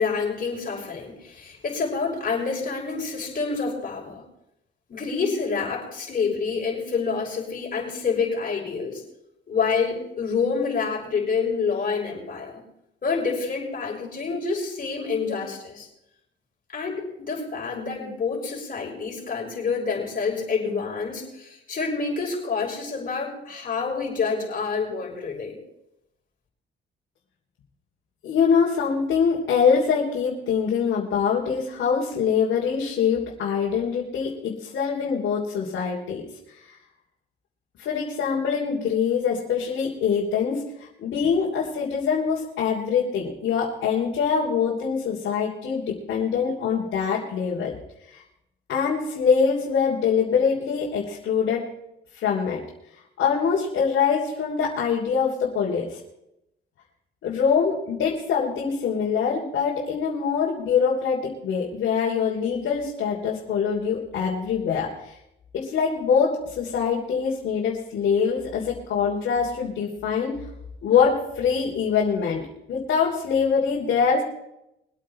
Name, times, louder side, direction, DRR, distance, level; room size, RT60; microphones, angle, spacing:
voice 1, 0.0-4.2 4.9-9.0 9.5-12.6 13.0-15.9 16.7-25.6, left 5 dB, 45° left, -2 dB, 5.9 m, -27 dB
voice 2, 28.2-36.2 36.7-36.8 37.8-47.8 48.1-48.2 48.7-51.7 52.1-52.6 53.2-56.0 57.2-65.2 65.5-70.5 70.8-74.2, left 6 dB, 70° left, -4 dB, 3.0 m, -24 dB
23.0 x 8.7 x 4.3 m, 0.83 s
cardioid pair, 90°, 20 cm